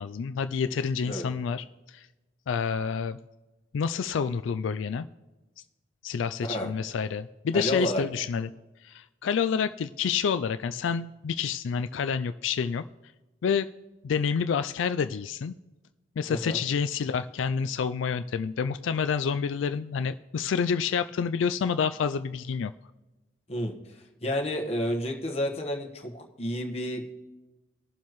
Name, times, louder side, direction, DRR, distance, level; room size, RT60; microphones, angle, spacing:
voice 1, 0.0-2.1 2.5-3.2 3.7-5.1 6.0-8.5 8.8-12.8 13.4-13.7 14.0-15.5 16.2-22.7, left 6 dB, 80° left, 11 dB, 0.3 m, -28 dB
voice 2, 6.4-6.7 7.5-8.0 16.3-16.6 23.5-27.1, left 1 dB, 30° left, 1 dB, 1.4 m, -30 dB
20.0 x 7.2 x 3.1 m, 1.1 s
head